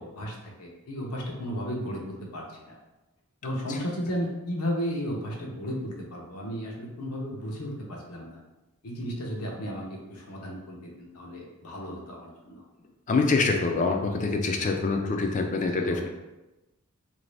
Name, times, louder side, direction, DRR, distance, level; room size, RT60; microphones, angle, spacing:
voice 1, 0.0-2.8 3.4-8.4 8.8-12.6 15.5-16.1, equal, 85° left, -1 dB, 0.8 m, -34 dB
voice 2, 13.1-16.0, left 3 dB, 35° left, 3 dB, 0.4 m, -25 dB
3.0 x 2.7 x 3.2 m, 1.0 s
head